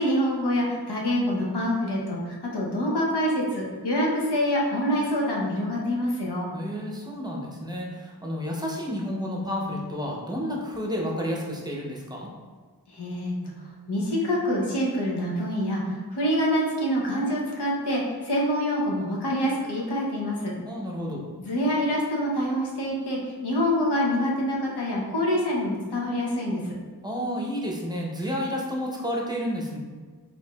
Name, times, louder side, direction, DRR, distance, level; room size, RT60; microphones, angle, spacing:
voice 1, 0.0-6.5 12.9-13.3 13.9-15.8 16.1-20.5 21.4-26.8, equal, 85° left, -3 dB, 0.8 m, -26 dB
voice 2, 6.5-12.3 20.6-21.2 27.0-29.8, equal, 10° right, -3 dB, 0.6 m, -31 dB
4.5 x 2.7 x 2.3 m, 1.5 s
wide cardioid pair, 75°, 39 cm